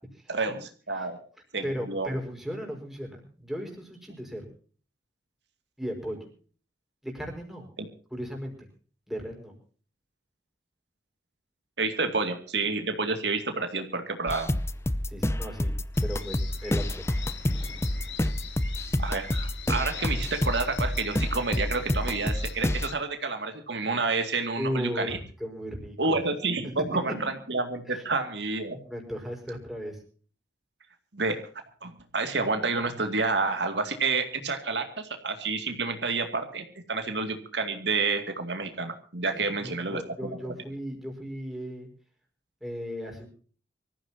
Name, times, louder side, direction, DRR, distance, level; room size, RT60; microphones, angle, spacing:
voice 1, 0.9-1.2 1.5-2.1 11.8-14.5 19.0-25.2 26.0-27.1 27.5-28.8 31.1-31.4 31.8-40.0, right 3 dB, 75° right, 6 dB, 2.3 m, -29 dB
voice 2, 1.6-4.5 5.8-6.3 7.0-7.7 8.1-8.7 9.1-9.6 15.1-17.1 24.6-26.2 26.6-26.8 27.9-28.0 28.8-30.0 39.3-41.9 42.6-43.3, equal, ahead, 1 dB, 5.2 m, -36 dB
sound 1, 14.3-22.9, left 1 dB, 15° left, 0.7 m, -28 dB
sound 2, 15.9-22.9, left 7 dB, 85° left, 2.3 m, -43 dB
25.0 x 14.5 x 2.8 m, 0.42 s
head